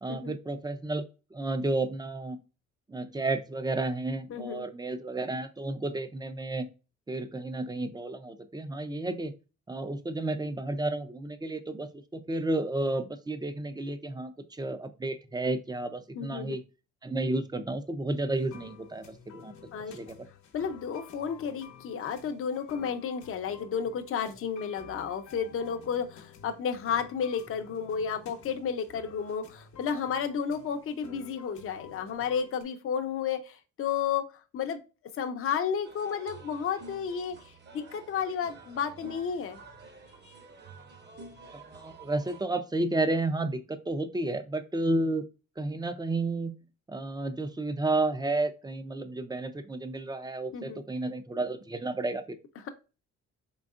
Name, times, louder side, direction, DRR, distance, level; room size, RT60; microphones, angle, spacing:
voice 1, 0.0-1.0 1.3-2.4 2.9-6.7 7.1-9.3 9.7-16.6 17.0-19.1 19.3-19.5 19.9-20.2 41.5-45.2 45.6-46.6 46.9-52.4, right 2 dB, 15° right, 10 dB, 0.4 m, -32 dB
voice 2, 4.3-4.7 16.1-16.6 19.7-20.0 20.5-34.8 35.2-39.6 50.5-50.8 52.6-52.7, left 7 dB, 45° left, 6 dB, 0.6 m, -32 dB
sound 1, 18.3-32.6, left 6 dB, 75° left, 0.9 m, -52 dB
sound 2, 35.8-42.4, right 3 dB, 35° right, 0.9 m, -50 dB
3.8 x 3.4 x 2.4 m, 0.31 s
cardioid pair, 90°, 30 cm